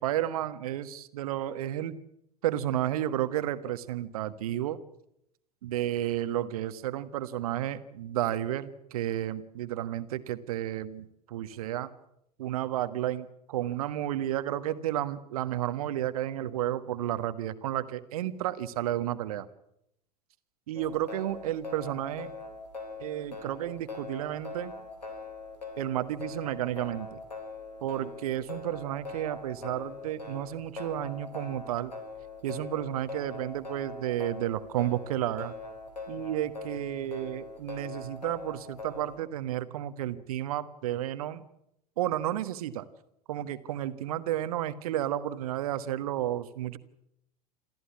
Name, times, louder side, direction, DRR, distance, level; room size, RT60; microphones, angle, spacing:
voice 1, 0.0-1.9 2.4-4.8 5.6-11.9 12.4-19.5 20.7-22.3 23.0-24.7 25.8-27.2 27.8-31.9 32.4-35.5 36.1-41.4 42.0-42.8 43.3-46.8, right 12 dB, 60° right, 12 dB, 1.4 m, -32 dB
sound 1, 20.8-39.2, left 3 dB, 85° left, 4.0 m, -42 dB
27.5 x 14.0 x 8.5 m, 0.79 s
figure-of-eight pair, 85°, 21 cm